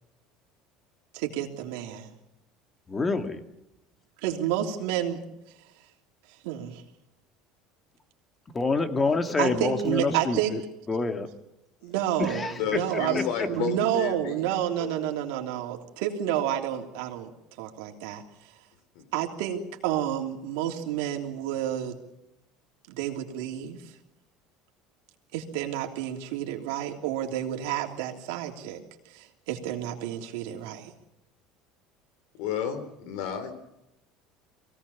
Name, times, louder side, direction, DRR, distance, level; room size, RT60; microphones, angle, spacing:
voice 1, 1.1-2.1 4.2-5.2 6.4-6.8 9.4-10.5 11.8-13.2 13.5-17.3 17.6-18.2 19.1-22.0 22.9-23.8 25.3-28.8 29.1-30.9, right 11 dB, 80° right, 2 dB, 3.1 m, -30 dB
voice 2, 2.9-3.4 8.5-10.6 10.9-11.3 12.2-12.5 13.1-13.2, left 3 dB, 20° left, 7 dB, 2.0 m, -26 dB
voice 3, 12.6-14.4 14.8-14.9 15.4-15.6 18.9-19.0 32.3-33.5, left 8 dB, 75° left, 10 dB, 3.9 m, -32 dB
23.5 x 17.5 x 7.2 m, 0.89 s
supercardioid pair, 120°, 0 cm